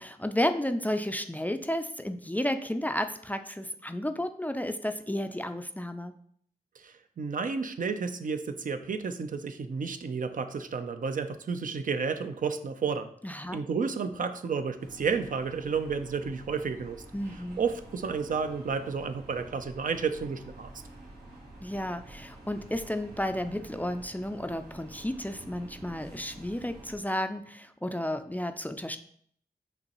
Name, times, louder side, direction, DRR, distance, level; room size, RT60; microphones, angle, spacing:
voice 1, 0.0-6.1 13.2-13.6 17.1-17.6 21.6-29.0, left 1 dB, 10° left, 8 dB, 0.4 m, -32 dB
voice 2, 6.8-13.1 13.5-17.0 17.6-20.7, right 5 dB, 60° right, 9 dB, 0.4 m, -31 dB
sound 1, 14.8-27.0, right 1 dB, 85° right, 1.5 m, -49 dB
5.2 x 3.0 x 2.9 m, 0.62 s
cardioid pair, 45°, 16 cm